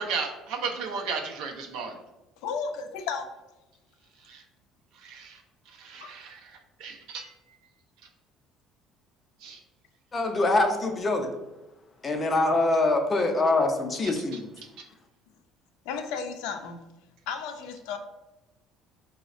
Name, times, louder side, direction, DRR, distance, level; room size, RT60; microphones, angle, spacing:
voice 1, 0.0-2.0 4.3-4.4 5.0-5.4 5.8-6.5 6.8-7.3 9.4-9.6 14.0-14.1, right 5 dB, 80° right, 2 dB, 0.5 m, -34 dB
voice 2, 2.4-3.3 6.0-6.1 15.9-16.8 17.3-18.0, left 6 dB, 85° left, 6 dB, 0.4 m, -33 dB
voice 3, 10.1-11.3 12.0-14.5, left 2 dB, 25° left, 4 dB, 0.5 m, -24 dB
4.9 x 2.0 x 2.4 m, 0.99 s
cardioid pair, 140°, 0 cm